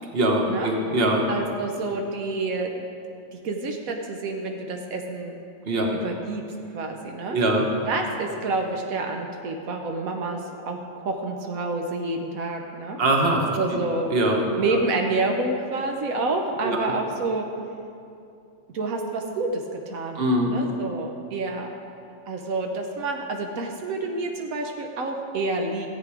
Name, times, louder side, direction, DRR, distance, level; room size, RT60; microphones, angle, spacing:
voice 1, 0.1-1.2 5.6-5.9 7.3-7.7 13.0-13.8 14.1-14.4 16.6-16.8 20.1-20.5, right 1 dB, 45° right, 1 dB, 1.4 m, -22 dB
voice 2, 1.3-2.9 3.3-5.4 5.9-6.4 6.7-7.4 7.9-10.4 10.7-13.0 13.6-14.1 14.6-17.4 18.7-21.7 22.3-25.9, right 3 dB, 85° right, 3 dB, 1.3 m, -28 dB
14.0 x 8.3 x 4.9 m, 2.5 s
omnidirectional pair, 1.4 m